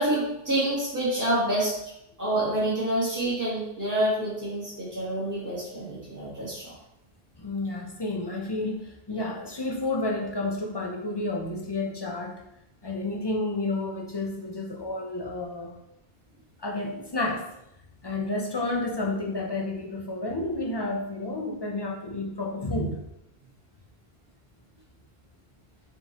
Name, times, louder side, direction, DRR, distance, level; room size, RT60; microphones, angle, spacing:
voice 1, 0.0-1.7 2.2-6.7, right 1 dB, 15° right, -9 dB, 1.7 m, -27 dB
voice 2, 7.4-12.4 12.8-15.8 16.6-17.5 18.0-23.0, left 2 dB, 40° left, 0 dB, 0.3 m, -30 dB
4.5 x 3.7 x 2.8 m, 0.82 s
omnidirectional pair, 1.1 m